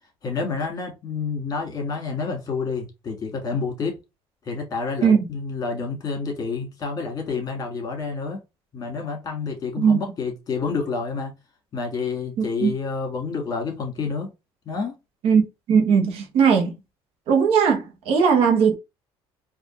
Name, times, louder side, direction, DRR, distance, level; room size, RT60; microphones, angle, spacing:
voice 1, 0.2-4.0 4.5-8.4 8.7-11.3 11.7-14.3 14.7-14.9, left 4 dB, 35° left, 1.6 m, -29 dB
voice 2, 15.7-16.7 17.3-18.7, right 6 dB, 65° right, 1.1 m, -18 dB
4.1 x 2.6 x 3.0 m
cardioid pair, 110°, 11 cm